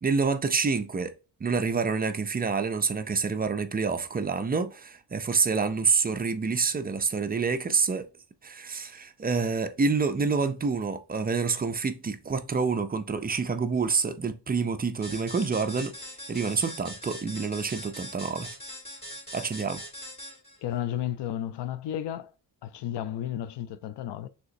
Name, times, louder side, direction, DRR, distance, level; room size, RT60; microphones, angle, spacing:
voice 1, 0.0-1.1 1.4-8.1 8.4-16.0 16.3-18.5 19.3-19.8, right 5 dB, 25° right, 0.4 m, -27 dB
sound 1, 15.0-20.6, equal, 15° left, 2.2 m, -41 dB
voice 2, 20.6-22.3 22.6-24.3, left 11 dB, 75° left, 0.6 m, -33 dB
6.5 x 2.9 x 2.6 m
wide cardioid pair, 140°, 42 cm